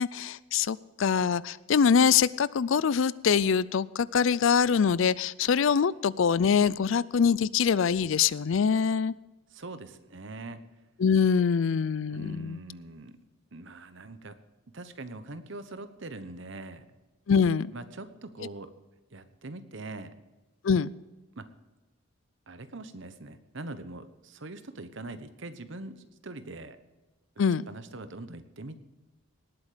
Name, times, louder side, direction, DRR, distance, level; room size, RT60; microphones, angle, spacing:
voice 1, 0.0-9.1 11.0-12.6 17.3-17.7 20.6-20.9 27.4-27.6, left 6 dB, 65° left, 20 dB, 0.4 m, -24 dB
voice 2, 9.5-10.6 12.1-13.2 13.5-14.3 14.7-16.8 17.7-18.7 19.1-20.1 21.4-21.5 22.5-26.8 27.7-28.8, right 2 dB, 60° right, 11 dB, 1.0 m, -42 dB
19.0 x 8.5 x 5.1 m, 1.1 s
head